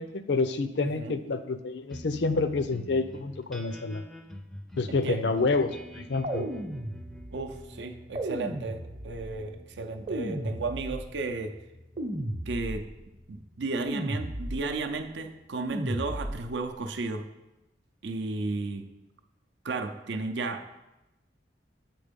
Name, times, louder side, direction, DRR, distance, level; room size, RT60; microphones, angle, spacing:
voice 1, 0.0-4.0 4.8-6.5, left 3 dB, 70° left, 10 dB, 0.5 m, -28 dB
voice 2, 0.8-1.2 4.9-5.3 7.3-11.5 12.5-12.9 13.3-17.3 18.0-18.9 19.6-20.7, right 3 dB, 70° right, 6 dB, 0.5 m, -34 dB
sound 1, 1.9-16.6, equal, ahead, 0.4 m, -48 dB
sound 2, 6.2-7.5 8.2-9.3 10.1-11.2 12.0-13.0 13.9-14.8 15.7-16.6, right 1 dB, 40° right, 0.7 m, -34 dB
7.6 x 4.4 x 5.2 m, 0.97 s
head